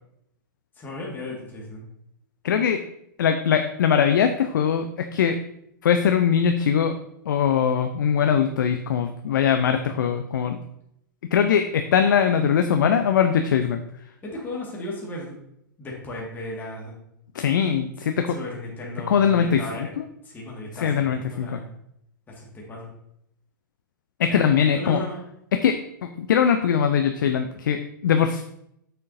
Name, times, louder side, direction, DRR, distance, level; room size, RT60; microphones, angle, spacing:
voice 1, 0.8-1.9 14.2-15.4 15.8-16.9 18.3-19.9 20.3-21.7 22.4-22.9 24.3-25.2, left 1 dB, 15° left, -3 dB, 1.9 m, -35 dB
voice 2, 2.4-2.8 3.2-5.4 5.8-7.0 7.3-10.6 11.2-13.8 17.3-18.4 19.1-20.0 20.7-21.6 24.2-25.0 25.5-28.4, left 7 dB, 65° left, 7 dB, 0.6 m, -21 dB
8.4 x 6.6 x 2.7 m, 0.76 s
figure-of-eight pair, 110°, 11 cm